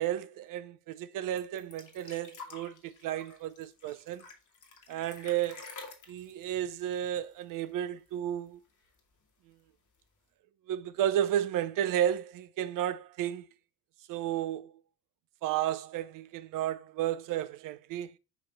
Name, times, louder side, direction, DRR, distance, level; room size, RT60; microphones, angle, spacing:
voice 1, 0.0-4.2 4.9-5.6 6.1-8.6 10.7-13.5 14.1-14.7 15.4-18.1, right 11 dB, 45° right, 0.6 m, -32 dB
sound 1, 1.4-7.8 8.1-8.2 8.5-9.2 10.0-10.1, left 4 dB, 40° left, 2.0 m, -50 dB
5.8 x 5.8 x 3.1 m
figure-of-eight pair, 55°, 44 cm